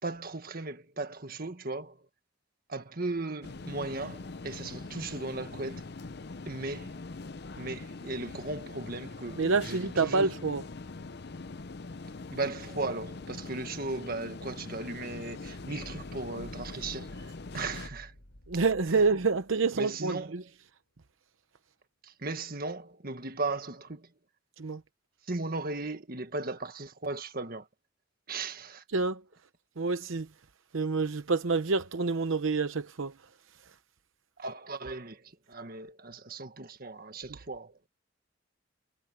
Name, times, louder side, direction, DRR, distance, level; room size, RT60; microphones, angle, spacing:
voice 1, 0.0-2.0 2.7-5.9 6.5-7.0 7.6-10.3 12.3-18.1 18.9-19.0 19.8-20.3 22.0-24.1 25.3-27.7 28.3-28.8 34.4-37.8, right 3 dB, 45° right, 1.7 m, -37 dB
sound 1, 3.4-17.9, left 3 dB, 55° left, 0.7 m, -43 dB
voice 2, 9.4-10.6 18.5-20.4 24.6-24.8 28.9-29.2 29.8-30.3 30.7-33.1, right 4 dB, 80° right, 0.8 m, -27 dB
sound 2, 14.7-20.6, left 1 dB, 85° left, 4.7 m, -52 dB
head